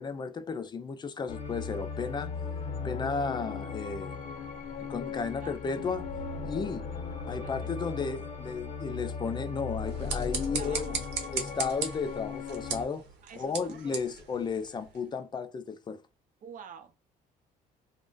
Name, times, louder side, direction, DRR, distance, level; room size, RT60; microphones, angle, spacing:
voice 1, 0.0-2.3 2.8-4.1 4.9-6.1 6.4-6.9 7.3-10.9 11.3-13.0 13.4-16.0, left 5 dB, 25° left, 0.4 m, -34 dB
sound 1, 1.3-12.9, left 5 dB, 45° left, 0.8 m, -37 dB
voice 2, 5.1-5.6 6.9-7.0 7.3-7.9 10.5-11.1 13.2-14.0 16.4-17.0, right 7 dB, 50° right, 0.6 m, -48 dB
sound 2, 9.8-15.1, right 6 dB, 90° right, 0.8 m, -38 dB
2.4 x 2.1 x 3.7 m
cardioid pair, 110°, 17 cm